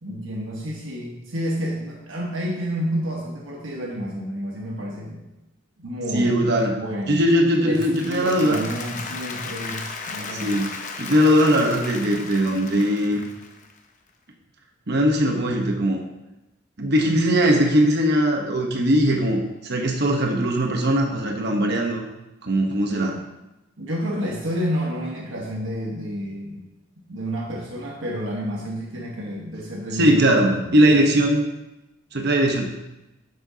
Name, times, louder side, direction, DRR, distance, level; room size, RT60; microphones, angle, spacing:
voice 1, 0.0-5.3 5.8-6.3 6.8-7.3 7.6-10.5 23.8-26.7 27.1-30.2 30.6-31.0, equal, 75° right, -3 dB, 1.3 m, -30 dB
voice 2, 6.1-6.8 7.1-8.6 10.3-10.7 11.0-13.2 14.9-16.0 16.8-22.0 22.4-23.2 29.9-31.5 32.1-32.7, equal, 60° right, 1 dB, 1.1 m, -20 dB
Applause, 7.5-13.8, left 4 dB, 40° left, 0.9 m, -35 dB
11.0 x 7.7 x 2.8 m, 0.97 s
head